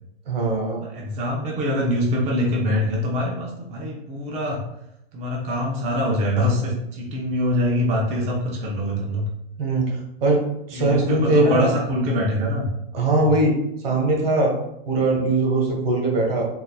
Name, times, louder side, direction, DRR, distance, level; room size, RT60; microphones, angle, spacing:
voice 1, 0.3-0.8 9.6-9.9 10.2-10.4 10.7-11.7 12.9-13.5 13.8-14.5 14.9-16.4, right 2 dB, 70° right, 0 dB, 1.2 m, -20 dB
voice 2, 0.8-4.6 5.1-9.3 10.7-12.7 13.1-13.4, left 1 dB, 20° right, -2 dB, 0.6 m, -24 dB
3.8 x 2.6 x 2.3 m, 0.82 s
hypercardioid pair, 130°, 31 cm